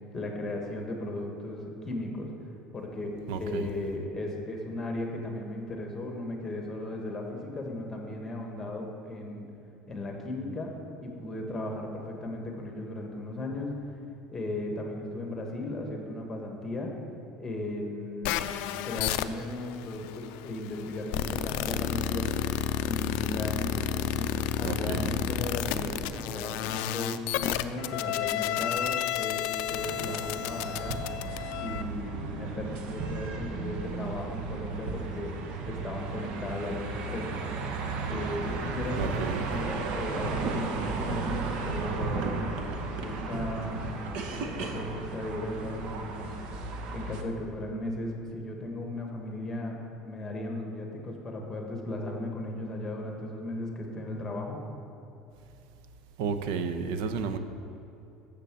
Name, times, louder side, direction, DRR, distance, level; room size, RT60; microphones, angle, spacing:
voice 1, 0.1-2.3 2.7-9.4 9.9-10.7 11.0-14.0 14.3-16.9 17.4-18.5 18.8-22.3 22.8-31.0 31.6-35.3 35.7-37.4 38.1-42.3 43.0-43.9 44.4-46.3 46.9-49.8 50.0-54.6, left 1 dB, 15° left, 1 dB, 1.3 m, -36 dB
voice 2, 3.3-3.7 24.6-25.2 39.0-39.5 56.2-57.4, right 5 dB, 80° right, 9 dB, 0.6 m, -32 dB
sound 1, 18.2-31.8, left 11 dB, 70° left, 0.4 m, -31 dB
sound 2, 29.7-47.2, right 4 dB, 55° right, 0.9 m, -34 dB
6.7 x 6.7 x 7.5 m, 2.8 s
cardioid pair, 150°, 2 cm